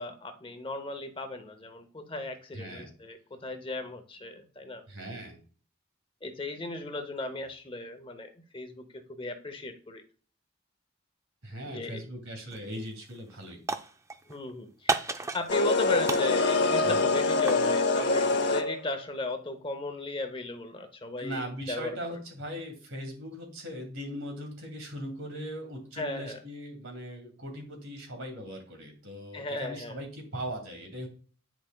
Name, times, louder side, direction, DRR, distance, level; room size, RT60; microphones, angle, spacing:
voice 1, 0.0-4.8 6.2-10.0 11.6-12.0 14.3-15.0 15.3-21.4 21.7-22.2 26.0-26.4 29.3-30.0, left 2 dB, 25° left, 7 dB, 0.8 m, -36 dB
voice 2, 2.5-2.9 4.9-5.4 11.4-13.6 16.8-17.1 21.2-31.1, equal, 90° right, 3 dB, 2.5 m, -39 dB
sound 1, 12.5-12.8 13.1-14.4 14.9-15.8 16.1-17.7, right 3 dB, 15° right, 0.4 m, -33 dB
sound 2, 15.5-19.0, left 3 dB, 60° left, 0.8 m, -25 dB
9.7 x 5.1 x 2.3 m, 0.41 s
head